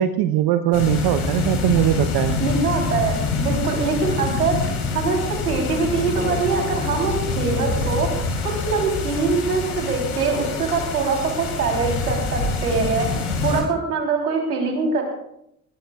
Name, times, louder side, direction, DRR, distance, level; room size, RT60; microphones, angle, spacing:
voice 1, 0.0-2.4, right 11 dB, 55° right, 9 dB, 1.0 m, -20 dB
sound 1, 0.7-13.6, left 4 dB, 70° left, 4.8 m, -26 dB
voice 2, 2.4-4.6 4.9-8.1 8.4-13.1 13.4-15.0, right 4 dB, 85° right, 1 dB, 3.7 m, -23 dB
20.5 x 20.0 x 2.4 m, 0.77 s
figure-of-eight pair, 55°, 45 cm